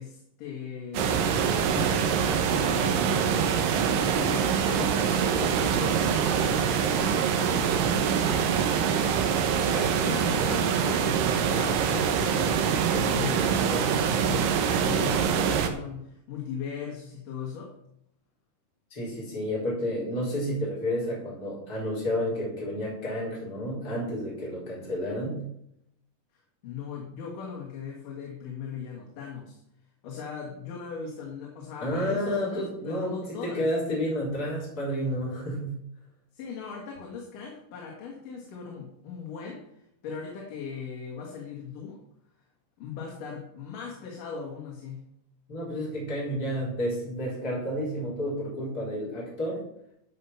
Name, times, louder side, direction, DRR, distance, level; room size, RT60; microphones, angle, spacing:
voice 1, 0.0-9.3 9.7-11.2 11.5-17.7 26.3-29.6 30.0-33.7 36.3-42.0 42.8-45.1, left 6 dB, 75° left, -1 dB, 3.3 m, -39 dB
sound 1, 0.9-15.7, right 7 dB, 85° right, 2.7 m, -24 dB
voice 2, 18.9-25.4 31.8-33.1 33.4-35.8 45.5-49.6, equal, 25° left, -5 dB, 4.5 m, -30 dB
13.0 x 5.6 x 5.6 m, 0.75 s
omnidirectional pair, 3.8 m